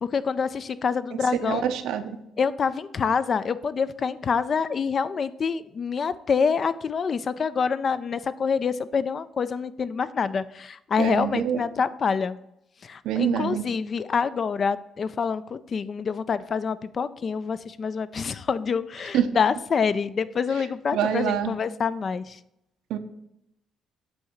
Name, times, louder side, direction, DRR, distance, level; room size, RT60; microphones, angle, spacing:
voice 1, 0.0-1.6 2.4-12.4 12.8-22.4, left 6 dB, 45° left, 15 dB, 0.3 m, -26 dB
voice 2, 1.1-2.2 11.0-11.6 13.0-13.7 19.1-19.3 20.9-21.5 22.9-23.0, right 9 dB, 85° right, 8 dB, 0.6 m, -26 dB
7.7 x 2.8 x 5.7 m, 0.83 s
cardioid pair, 95°, 0 cm